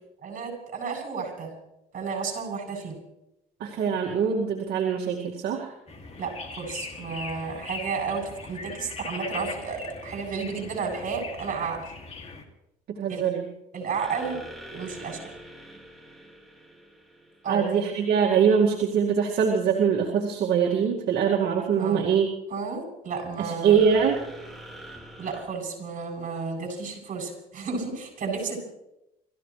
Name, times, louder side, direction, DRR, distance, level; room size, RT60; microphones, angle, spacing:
voice 1, 0.2-1.5 1.9-3.0 6.2-11.8 13.1-13.2 13.7-14.4 14.7-15.2 17.4-17.6 21.8-22.1 22.5-23.8 25.2-28.6, right 5 dB, 50° right, -1 dB, 7.8 m, -32 dB
voice 2, 3.6-5.7 12.9-13.5 17.5-22.3 23.4-24.2, right 7 dB, 70° right, -2 dB, 2.3 m, -23 dB
sound 1, 5.9-12.4, left 4 dB, 40° left, 2.7 m, -40 dB
sound 2, 7.6-8.3 13.9-18.1 23.7-25.4, right 1 dB, ahead, 4.5 m, -44 dB
29.0 x 15.0 x 3.3 m, 0.87 s
cardioid pair, 110°, 17 cm